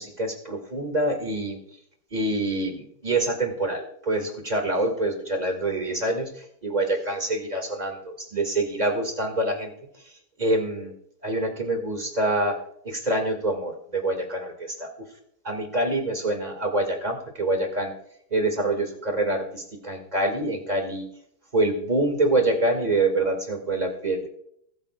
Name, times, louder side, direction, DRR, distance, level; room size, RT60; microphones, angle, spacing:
voice 1, 0.0-1.6 2.1-9.7 10.4-10.9 11.2-12.6 12.8-14.9 15.4-17.9 18.3-21.0 21.5-24.3, right 2 dB, 25° right, 4 dB, 1.9 m, -26 dB
21.5 x 9.0 x 2.3 m, 0.69 s
omnidirectional pair, 1.9 m